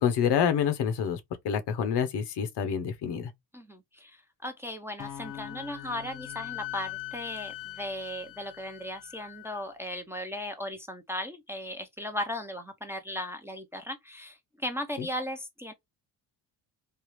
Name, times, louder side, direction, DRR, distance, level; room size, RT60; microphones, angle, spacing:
voice 1, 0.0-3.3 15.0-15.1, left 8 dB, 65° left, 0.9 m, -27 dB
voice 2, 3.5-15.7, left 1 dB, 5° right, 0.6 m, -37 dB
sound 1, 5.0-9.1, left 10 dB, 45° left, 0.6 m, -47 dB
Wind instrument woodwind instrument, 5.2-9.6, left 18 dB, 90° left, 0.6 m, -42 dB
3.4 x 2.4 x 3.0 m
cardioid pair, 95°, 44 cm